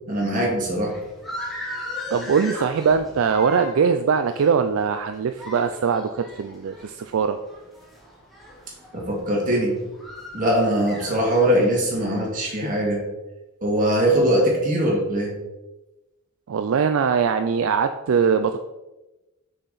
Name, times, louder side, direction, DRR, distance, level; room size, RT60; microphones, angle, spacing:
voice 1, 0.1-0.9 8.9-9.8 10.3-13.0 13.6-15.3, right 1 dB, 35° right, -3 dB, 2.0 m, -21 dB
sound 1, 0.7-12.9, left 1 dB, ahead, 1.4 m, -39 dB
voice 2, 2.1-7.4 16.5-18.6, right 6 dB, 60° right, 8 dB, 0.3 m, -21 dB
6.4 x 5.7 x 4.0 m, 1.0 s
head